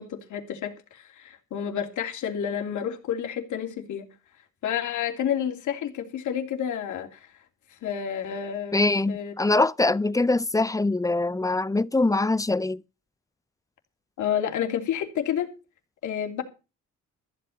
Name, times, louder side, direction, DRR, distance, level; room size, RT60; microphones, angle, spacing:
voice 1, 0.0-4.1 4.6-7.3 7.8-8.8 9.1-9.3 14.2-15.5 16.0-16.4, left 9 dB, 75° left, 3.0 m, -30 dB
voice 2, 8.7-12.8, left 2 dB, 10° left, 0.6 m, -23 dB
14.5 x 8.3 x 6.5 m
cardioid pair, 90°, 30 cm